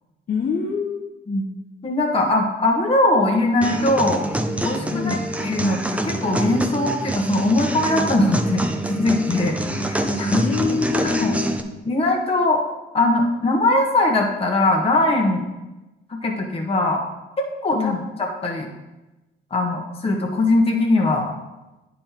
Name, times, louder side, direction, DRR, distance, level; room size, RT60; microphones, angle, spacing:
voice 1, 0.3-1.1 4.9-5.2 10.4-11.5 17.7-18.0, left 6 dB, 50° left, -1 dB, 1.0 m, -25 dB
voice 2, 1.8-4.2 4.6-5.2 5.4-9.6 9.9-10.4 11.0-11.4 11.8-12.6 12.9-15.5 16.1-17.0 17.6-17.9 18.4-18.7 19.5-21.3, left 2 dB, 30° left, 0 dB, 1.4 m, -20 dB
sound 1, 3.6-11.6, right 1 dB, 5° right, 0.8 m, -25 dB
9.8 x 5.4 x 4.5 m, 1.1 s
cardioid pair, 90°, 20 cm